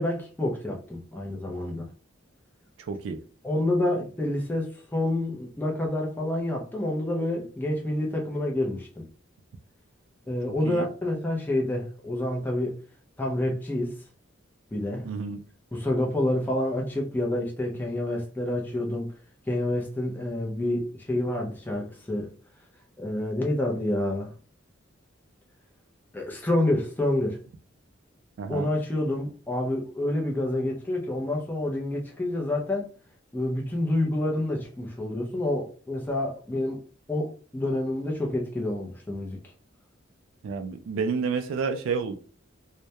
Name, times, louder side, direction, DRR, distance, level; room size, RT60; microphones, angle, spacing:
voice 1, 0.0-1.9 3.4-9.0 10.3-12.8 13.2-13.9 14.7-15.1 15.7-19.1 19.5-22.3 23.0-24.3 26.1-27.4 28.5-32.9 33.3-36.8 37.1-39.4, left 1 dB, 10° left, 0.4 m, -28 dB
voice 2, 2.9-3.2 10.7-10.9 15.0-15.4 28.4-28.7 40.4-42.1, right 5 dB, 75° right, 0.3 m, -29 dB
2.2 x 2.1 x 2.7 m
head